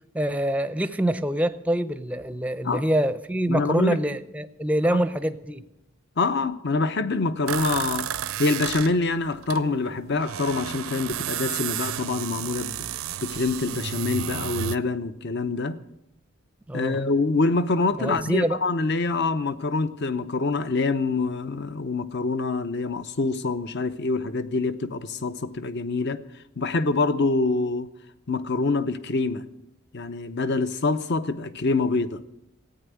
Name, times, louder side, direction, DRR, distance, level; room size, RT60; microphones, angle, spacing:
voice 1, 0.1-5.6 16.7-17.0 18.0-18.6, right 1 dB, 5° right, 0.6 m, -25 dB
voice 2, 3.5-4.0 4.9-5.0 6.2-12.8 13.2-15.8 16.7-26.2 26.6-27.9 28.3-29.4 29.9-32.2, left 3 dB, 50° left, 0.8 m, -25 dB
sound 1, 7.5-9.6 9.9-14.8, right 10 dB, 75° right, 0.5 m, -32 dB
15.0 x 9.2 x 9.5 m
head